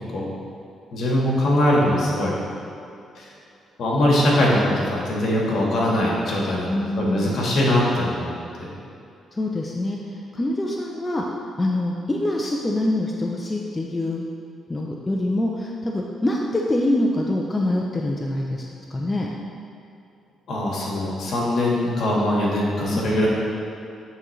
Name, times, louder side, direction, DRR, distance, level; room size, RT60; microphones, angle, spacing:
voice 1, 0.9-2.3 3.1-3.2 3.8-8.3 8.6-8.7 20.5-23.3, left 1 dB, 65° left, -4 dB, 1.5 m, -21 dB
voice 2, 6.7-7.4 9.3-11.2 11.6-14.2 14.7-19.3, left 1 dB, 20° left, -1 dB, 0.5 m, -25 dB
9.2 x 3.7 x 3.2 m, 2.6 s
cardioid pair, 90°, 0 cm